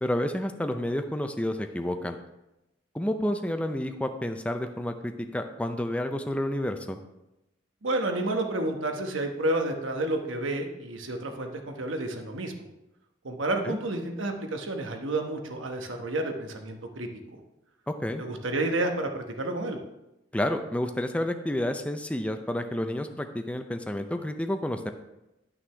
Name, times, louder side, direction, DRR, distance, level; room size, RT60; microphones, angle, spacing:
voice 1, 0.0-2.2 2.9-7.0 13.6-13.8 17.9-18.2 20.3-24.9, left 1 dB, 5° left, 6 dB, 0.4 m, -30 dB
voice 2, 7.8-12.5 13.2-17.1 18.2-19.8, right 2 dB, 85° right, 4 dB, 1.1 m, -30 dB
11.0 x 6.1 x 3.4 m, 0.93 s
head